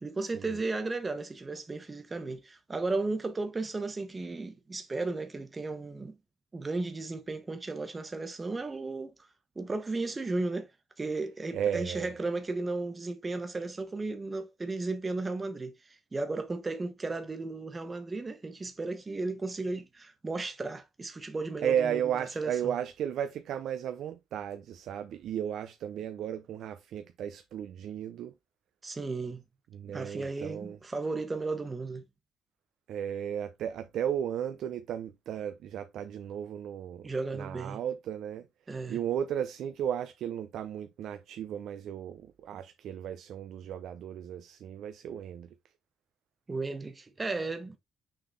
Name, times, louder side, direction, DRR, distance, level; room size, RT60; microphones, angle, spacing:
voice 1, 0.0-6.2 6.5-9.1 9.5-10.7 11.0-22.0 22.4-22.7 28.8-29.4 29.9-32.0 37.0-37.8 38.7-39.0 46.5-47.8, right 3 dB, 20° right, 1.2 m, -34 dB
voice 2, 11.5-12.2 21.6-28.3 29.7-30.8 32.9-38.5 38.9-45.5, right 9 dB, 85° right, 0.6 m, -34 dB
6.4 x 3.9 x 4.0 m
cardioid pair, 130°, 0 cm